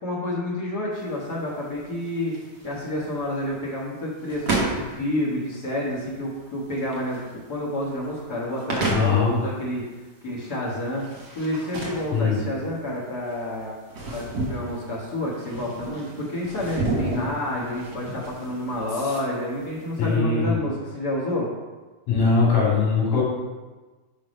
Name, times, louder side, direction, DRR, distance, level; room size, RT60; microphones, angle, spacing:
voice 1, 0.0-2.3 2.6-9.8 10.2-11.0 11.3-13.7 14.1-21.5, left 1 dB, 85° left, -5 dB, 0.8 m, -29 dB
sound 1, 0.9-20.1, right 2 dB, 80° right, 0.9 m, -33 dB
voice 2, 8.9-9.3 12.1-12.4 20.0-20.6 22.1-23.2, left 4 dB, 55° left, -5 dB, 3.2 m, -21 dB
6.4 x 5.3 x 5.3 m, 1.3 s
omnidirectional pair, 4.0 m